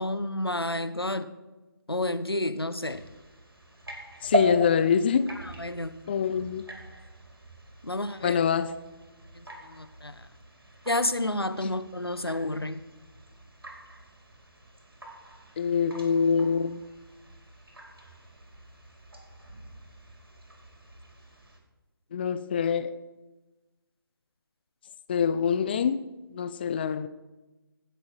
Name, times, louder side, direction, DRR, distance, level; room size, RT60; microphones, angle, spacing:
voice 1, 0.0-1.3 1.9-3.0 5.4-6.0 7.8-8.4 9.3-10.3 10.9-12.8, left 1 dB, 90° left, 12 dB, 1.1 m, -30 dB
sound 1, 2.9-21.6, right 1 dB, 75° right, 4.8 m, -39 dB
voice 2, 4.2-5.3 6.1-6.6 8.2-8.7 15.6-16.8 22.1-23.0 25.1-26.0 26.3-27.1, left 6 dB, 25° left, 12 dB, 0.4 m, -25 dB
18.0 x 8.3 x 6.3 m, 1.1 s
figure-of-eight pair, 150°, 12 cm